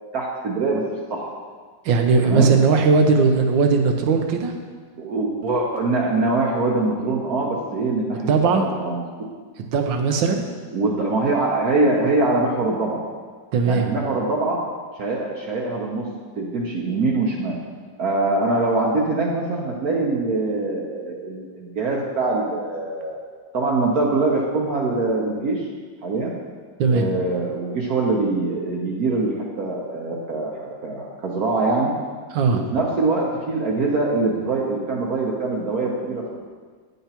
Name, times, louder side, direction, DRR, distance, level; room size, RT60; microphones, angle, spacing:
voice 1, 0.1-0.8 1.1-1.3 2.2-2.5 5.0-9.0 10.7-13.0 13.6-14.6 15.0-16.1 16.4-17.5 18.0-23.1 23.5-25.7 26.0-26.3 26.9-31.9 32.5-36.4, right 3 dB, 60° right, -2 dB, 1.2 m, -23 dB
voice 2, 1.8-4.5 8.3-8.6 9.7-10.4 13.5-13.9 26.8-27.1 32.3-32.6, right 4 dB, 85° right, 4 dB, 1.5 m, -18 dB
9.8 x 6.8 x 2.9 m, 1.5 s
omnidirectional pair, 2.0 m